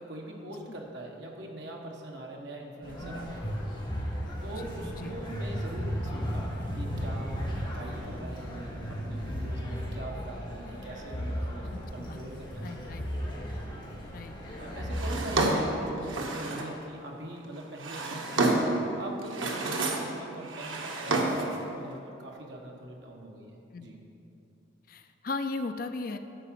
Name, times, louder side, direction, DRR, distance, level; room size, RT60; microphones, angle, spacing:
voice 1, 0.0-3.4 4.4-13.0 14.6-24.0, right 1 dB, 65° right, 0 dB, 1.3 m, -42 dB
sound 1, 2.8-15.9, equal, 25° left, 2.0 m, -35 dB
voice 2, 4.6-5.1 11.7-12.2 12.6-13.1 14.1-14.3 23.7-24.0 24.9-26.2, left 3 dB, 45° left, 8 dB, 0.4 m, -37 dB
Drawer open or close, 14.9-16.8 17.6-18.8 19.2-20.1 20.4-21.6, right 2 dB, 90° right, 1.2 m, -29 dB
10.5 x 4.9 x 7.5 m, 2.8 s
head